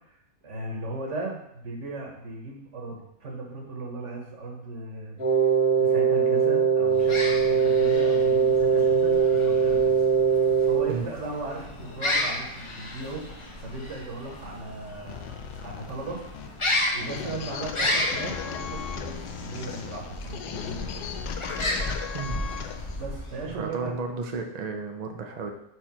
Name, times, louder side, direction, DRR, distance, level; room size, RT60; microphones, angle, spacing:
voice 1, 0.4-5.2 5.5-9.9 10.3-13.2 13.6-16.2 16.9-21.1 23.0-23.9, right 2 dB, 50° right, 0 dB, 1.4 m, -37 dB
Wind instrument woodwind instrument, 5.2-10.9, right 6 dB, 60° left, 1.7 m, -21 dB
sound 1, 6.9-23.7, left 1 dB, 25° left, 0.7 m, -33 dB
sound 2, 15.1-23.0, left 8 dB, 90° left, 1.2 m, -37 dB
voice 2, 23.4-25.5, right 4 dB, 75° right, 4 dB, 0.3 m, -33 dB
4.7 x 4.4 x 5.8 m, 0.80 s
omnidirectional pair, 1.7 m